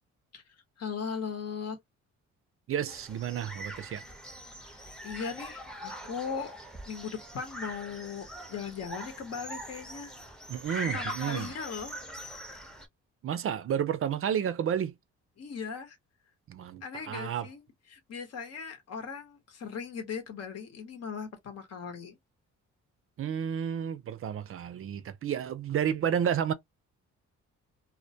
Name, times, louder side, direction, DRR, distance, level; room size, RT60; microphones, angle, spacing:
voice 1, 0.8-1.8 4.6-6.5 6.8-10.1 10.9-12.0 15.4-16.0 16.8-17.6 17.9-22.2, left 6 dB, 55° left, 0.9 m, -38 dB
voice 2, 2.7-4.0 10.5-11.5 13.2-14.9 16.5-17.5 23.2-26.5, right 9 dB, 45° right, 0.4 m, -31 dB
sound 1, 2.9-12.9, equal, ahead, 0.6 m, -42 dB
2.1 x 2.1 x 2.6 m
cardioid pair, 90°, 30 cm